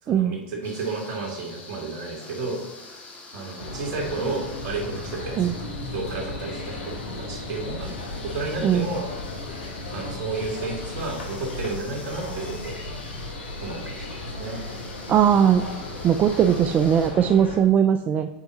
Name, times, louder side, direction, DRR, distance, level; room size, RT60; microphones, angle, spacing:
voice 1, 0.0-2.6 3.3-7.9 8.2-9.1 9.9-12.8 13.6-14.6, right 3 dB, 55° right, 0 dB, 2.7 m, -32 dB
sound 1, 0.6-17.1, left 3 dB, 30° left, 2.1 m, -44 dB
sound 2, 3.6-17.6, left 2 dB, 85° left, 1.8 m, -35 dB
voice 2, 15.1-15.7 16.0-18.3, right 9 dB, 30° right, 8 dB, 0.4 m, -19 dB
8.0 x 4.7 x 4.1 m, 0.98 s
hypercardioid pair, 95°, 5 cm